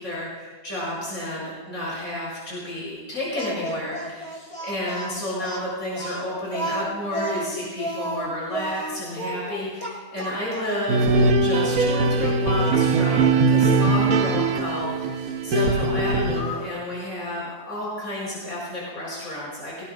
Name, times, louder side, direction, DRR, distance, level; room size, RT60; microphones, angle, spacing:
voice 1, 0.0-11.1 11.4-19.8, left 1 dB, 60° left, -7 dB, 5.8 m, -31 dB
Speech, 3.4-10.9 11.6-11.7 12.2-13.1 14.6-14.9 16.0-16.8, right 1 dB, 45° left, 2.7 m, -33 dB
sound 1, 10.9-16.4, right 3 dB, 70° right, 1.4 m, -21 dB
24.5 x 18.0 x 2.3 m, 1.4 s
omnidirectional pair, 1.6 m